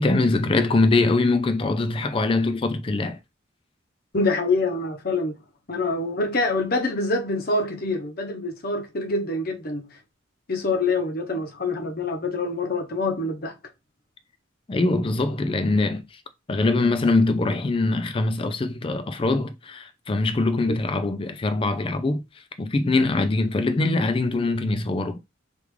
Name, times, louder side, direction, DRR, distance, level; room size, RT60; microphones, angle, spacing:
voice 1, 0.0-3.2 14.7-16.0 16.5-22.2 22.6-25.2, left 2 dB, 25° left, 0.3 m, -23 dB
voice 2, 4.1-5.4 5.7-9.8 10.5-13.5 20.7-20.8, left 3 dB, 45° left, 0.7 m, -25 dB
3.5 x 2.4 x 3.1 m
head